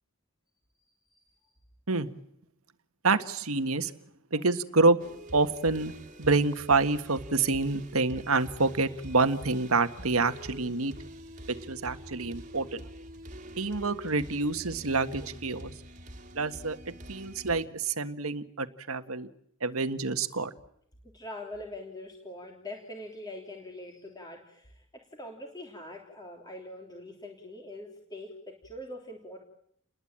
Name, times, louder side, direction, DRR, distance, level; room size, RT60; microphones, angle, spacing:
voice 1, 1.1-1.5 21.1-29.4, left 1 dB, 20° left, 1 dB, 3.2 m, -43 dB
voice 2, 3.0-3.9 4.3-5.0 5.3-5.9 6.2-11.0 11.5-12.8 13.6-15.7 16.3-16.8 17.1-19.3 19.6-20.5, right 3 dB, 80° right, 10 dB, 1.6 m, -27 dB
sound 1, 5.0-17.7, right 1 dB, 35° right, 2.4 m, -46 dB
30.0 x 21.0 x 8.9 m, 0.73 s
head